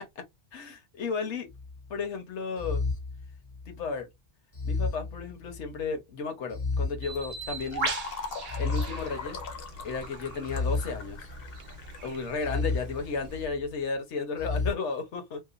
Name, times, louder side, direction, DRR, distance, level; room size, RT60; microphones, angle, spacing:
voice 1, 0.5-1.5 1.9-2.8 3.7-4.1 4.6-7.9 8.6-9.4 9.8-11.3 12.0-15.4, left 4 dB, 75° left, 1.1 m, -33 dB
sound 1, 1.5-1.9 2.6-3.9 4.5-5.8 6.5-7.8 8.5-9.8 10.4-11.7 12.4-13.7 14.4-14.7, left 3 dB, 20° left, 0.5 m, -33 dB
Bird, 7.0-13.4, right 4 dB, 50° right, 0.7 m, -40 dB
Fill (with liquid), 7.1-13.5, left 4 dB, 60° left, 0.8 m, -41 dB
2.9 x 2.2 x 2.4 m
omnidirectional pair, 1.2 m